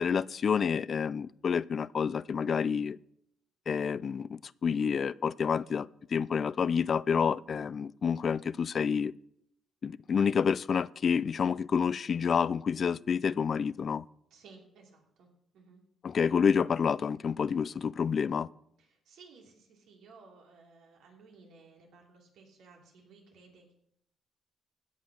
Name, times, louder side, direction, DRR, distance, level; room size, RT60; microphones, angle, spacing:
voice 1, 0.0-3.0 3.7-9.1 9.8-14.0 16.0-18.5, left 6 dB, 50° left, 0.3 m, -29 dB
voice 2, 14.3-15.3 15.5-15.8 18.8-23.8, right 4 dB, 85° right, 3.0 m, -57 dB
16.0 x 5.6 x 6.1 m
cardioid pair, 90°, 0 cm